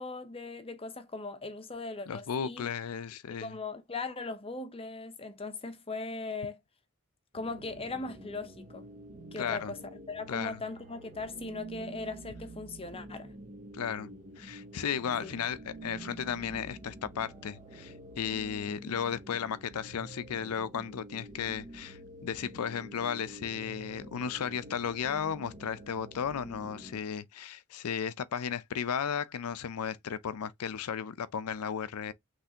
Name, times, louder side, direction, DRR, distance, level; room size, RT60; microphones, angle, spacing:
voice 1, 0.0-2.7 3.4-6.6 7.3-8.8 9.3-13.3 15.2-15.3, left 3 dB, 25° left, 0.7 m, -39 dB
voice 2, 2.1-3.5 9.4-9.7 10.3-10.6 13.7-14.1 14.4-32.1, left 7 dB, 85° left, 0.5 m, -35 dB
sound 1, 7.3-27.0, right 1 dB, 35° right, 0.8 m, -48 dB
5.7 x 3.3 x 2.8 m
head